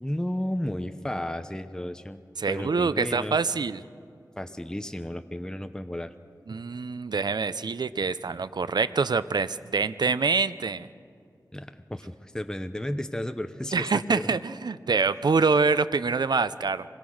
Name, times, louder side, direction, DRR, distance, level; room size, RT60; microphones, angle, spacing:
voice 1, 0.0-2.2 2.5-3.4 4.4-6.1 11.5-14.3, left 1 dB, 10° left, 9 dB, 0.8 m, -33 dB
voice 2, 2.4-3.8 6.5-10.9 13.7-16.9, right 4 dB, 80° right, 14 dB, 0.6 m, -25 dB
25.5 x 21.0 x 6.4 m, 2.3 s
wide cardioid pair, 65°, 7 cm